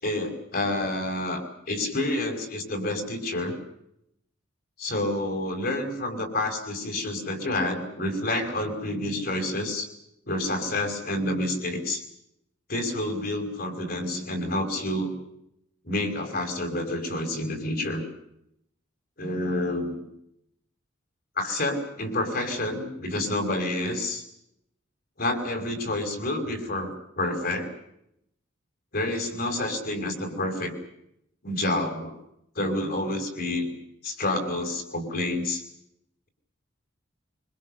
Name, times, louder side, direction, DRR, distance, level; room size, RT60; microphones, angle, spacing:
voice 1, 0.0-3.6 4.8-9.9 10.3-12.0 12.7-15.1 15.8-18.0 19.2-20.0 21.4-24.2 25.2-27.7 28.9-30.7 31.4-32.2 32.6-33.7 34.0-35.6, left 1 dB, 50° left, 4 dB, 5.5 m, -29 dB
26.0 x 25.0 x 6.6 m, 0.77 s
head